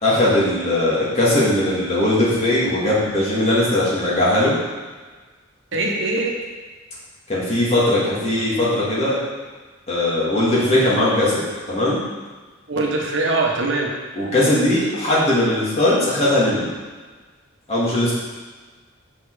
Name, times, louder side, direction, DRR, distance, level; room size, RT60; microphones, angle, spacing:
voice 1, 0.0-4.5 7.3-9.2 9.9-12.0 14.2-16.7 17.7-18.1, left 1 dB, 30° left, -8 dB, 2.6 m, -19 dB
voice 2, 5.7-6.4 12.7-13.9, right 2 dB, 65° right, 0 dB, 1.1 m, -22 dB
6.9 x 5.8 x 5.0 m, 1.4 s
head